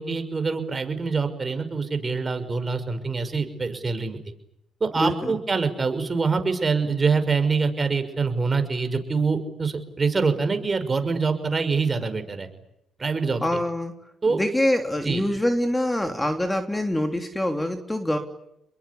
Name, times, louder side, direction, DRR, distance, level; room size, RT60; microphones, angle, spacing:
voice 1, 0.0-4.2 4.8-12.5 13.0-13.4 14.2-14.5 15.0-15.2, right 4 dB, 30° right, 8 dB, 5.9 m, -25 dB
voice 2, 5.0-5.4 13.4-13.9 14.3-18.2, left 1 dB, 10° left, 6 dB, 3.2 m, -25 dB
30.0 x 22.0 x 8.6 m, 0.81 s
cardioid pair, 90°, 0 cm